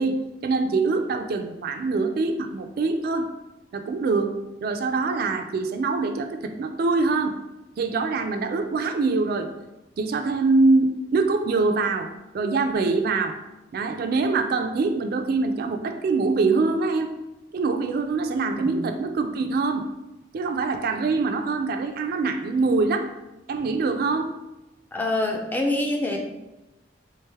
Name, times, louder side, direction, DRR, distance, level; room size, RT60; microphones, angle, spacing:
voice 1, 0.0-3.3 3.7-7.4 7.8-9.5 10.0-12.1 12.3-13.4 13.7-17.2 17.5-19.9 20.3-23.1 23.5-24.4, right 3 dB, 55° right, 6 dB, 0.3 m, -24 dB
voice 2, 24.9-26.2, left 2 dB, 10° left, 1 dB, 0.4 m, -25 dB
3.5 x 3.2 x 3.4 m, 0.99 s
head